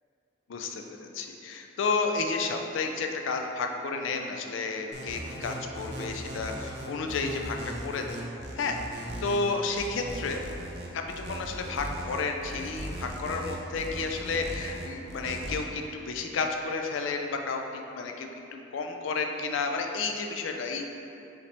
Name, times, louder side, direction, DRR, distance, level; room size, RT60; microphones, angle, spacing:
voice 1, 0.5-7.6 7.8-8.2 8.6-10.4 10.9-20.8, left 4 dB, 70° left, 4 dB, 0.4 m, -31 dB
sound 1, 4.9-15.6, right 1 dB, 55° right, 0.6 m, -38 dB
4.9 x 2.9 x 3.3 m, 2.7 s
head